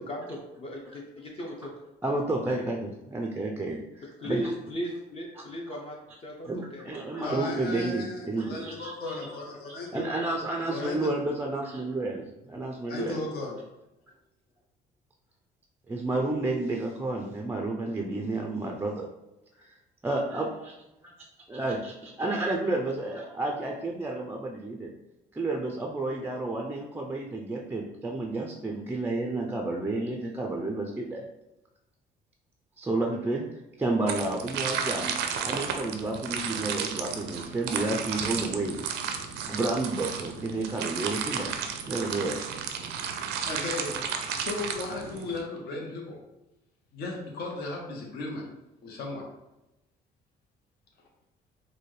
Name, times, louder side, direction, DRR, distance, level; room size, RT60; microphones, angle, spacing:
voice 1, 0.0-1.7 4.2-6.0 6.2-7.0, equal, 35° left, -1 dB, 0.6 m, -36 dB
voice 2, 2.0-4.5 5.4-5.8 6.4-9.4 9.9-13.2 15.9-19.1 19.6-19.8 20.0-20.7 21.0-24.9 25.3-31.2 32.8-33.5 33.8-35.1 35.4-38.8 39.5-41.5 41.9-42.4, right 2 dB, 10° right, 1 dB, 0.3 m, -31 dB
voice 3, 7.2-10.1 10.7-11.2 12.9-13.5 43.5-44.0 44.3-46.2 46.9-48.5 48.8-49.3, left 2 dB, 65° left, -1 dB, 0.9 m, -35 dB
sound 1, 34.1-45.4, right 7 dB, 85° right, 0.5 m, -33 dB
4.1 x 2.2 x 3.1 m, 0.93 s
cardioid pair, 110°, 17 cm